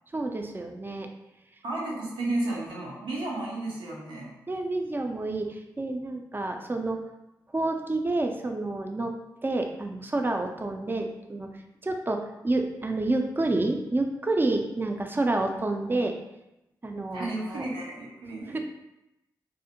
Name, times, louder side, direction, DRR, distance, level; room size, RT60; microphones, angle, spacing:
voice 1, 0.1-1.1 4.5-7.0 7.5-9.1 9.4-11.5 11.8-16.1 16.8-17.7 18.4-18.6, right 2 dB, 25° right, 4 dB, 0.4 m, -29 dB
voice 2, 1.6-4.3 17.1-18.6, right 2 dB, 90° right, -4 dB, 0.6 m, -33 dB
2.6 x 2.0 x 2.8 m, 0.90 s
supercardioid pair, 40°, 8 cm